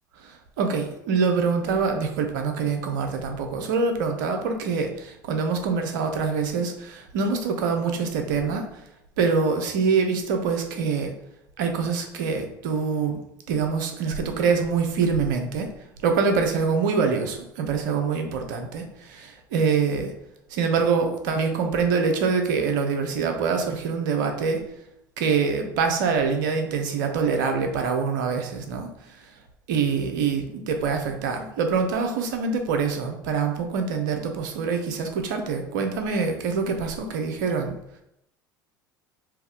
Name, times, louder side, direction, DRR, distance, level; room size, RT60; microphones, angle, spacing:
voice 1, 0.1-8.8 9.2-11.1 11.6-13.2 13.5-15.7 16.0-20.1 20.5-24.6 25.2-29.3 29.7-37.7, right 5 dB, 60° right, 5 dB, 0.7 m, -25 dB
3.4 x 3.0 x 3.5 m, 0.80 s
figure-of-eight pair, 70°, 11 cm